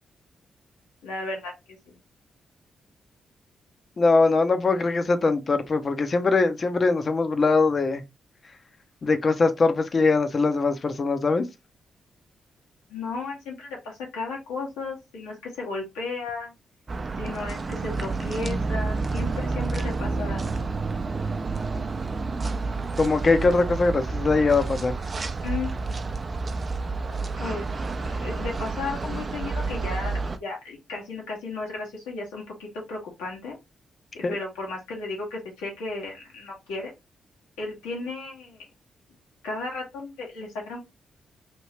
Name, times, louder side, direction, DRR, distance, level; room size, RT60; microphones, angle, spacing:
voice 1, 1.0-2.0 12.9-16.5 17.2-20.6 25.4-26.2 27.4-27.7 28.2-33.6 34.1-36.9 37.6-38.7 39.4-40.8, left 3 dB, 85° left, 1.3 m, -34 dB
voice 2, 4.0-8.0 9.0-11.5 23.0-25.0 34.2-34.3, left 3 dB, 50° left, 0.6 m, -22 dB
sound 1, 16.9-30.4, right 3 dB, 45° right, 0.5 m, -29 dB
2.9 x 2.7 x 3.1 m
hypercardioid pair, 40°, 0 cm